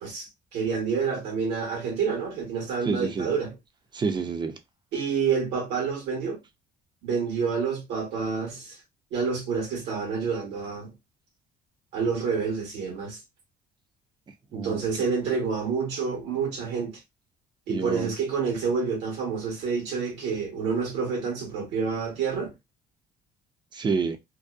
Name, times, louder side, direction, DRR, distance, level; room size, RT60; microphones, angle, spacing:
voice 1, 0.0-3.5 4.9-6.4 7.0-8.8 9.1-10.9 11.9-13.2 14.5-17.0 17.7-22.5, right 5 dB, 80° right, 1.2 m, -28 dB
voice 2, 2.8-3.3 3.9-4.6 14.5-15.1 17.7-18.1 23.7-24.2, right 5 dB, 25° right, 0.5 m, -28 dB
2.6 x 2.1 x 2.4 m
cardioid pair, 110°, 17 cm